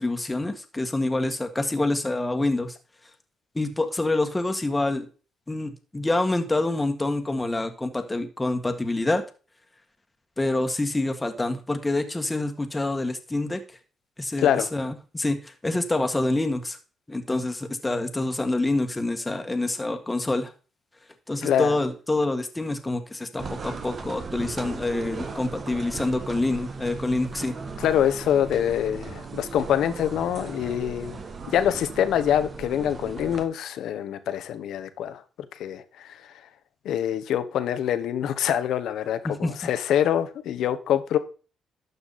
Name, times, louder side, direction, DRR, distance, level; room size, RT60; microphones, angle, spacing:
voice 1, 0.0-2.8 3.6-5.1 5.5-9.2 10.4-13.6 14.2-16.8 17.1-20.5 21.3-27.6 39.2-39.5, left 2 dB, 15° left, 1.7 m, -26 dB
voice 2, 14.4-14.7 21.4-21.8 27.8-31.2 31.5-35.2 35.6-36.3 36.8-41.2, left 10 dB, 80° left, 1.1 m, -25 dB
sound 1, 23.4-33.4, right 4 dB, 45° right, 1.7 m, -37 dB
12.0 x 6.9 x 4.2 m
cardioid pair, 90°, 0 cm